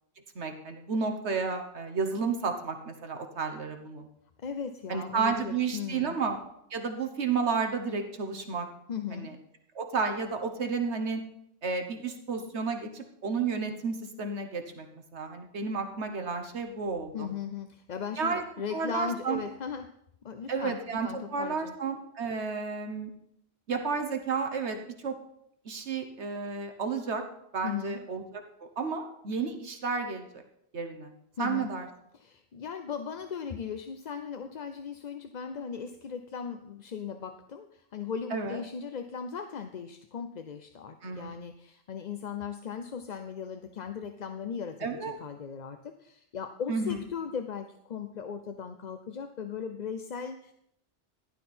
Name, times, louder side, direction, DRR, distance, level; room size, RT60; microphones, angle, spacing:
voice 1, 0.3-4.1 4.9-6.4 6.7-8.7 9.1-9.4 9.7-11.2 11.6-14.9 15.1-17.3 18.2-18.4 18.7-19.4 20.5-23.1 23.7-25.2 25.6-27.2 27.5-28.2 28.8-30.3 30.7-31.1 31.4-31.9 38.3-38.6 41.0-41.3 44.8-45.1 46.7-47.0, right 5 dB, 75° right, 5 dB, 1.5 m, -32 dB
voice 2, 4.4-6.2 8.9-9.3 17.1-20.0 20.2-21.7 27.6-28.0 31.4-31.7 32.1-50.5, left 7 dB, 45° left, 8 dB, 0.7 m, -38 dB
15.0 x 11.5 x 4.4 m, 0.74 s
omnidirectional pair, 1.2 m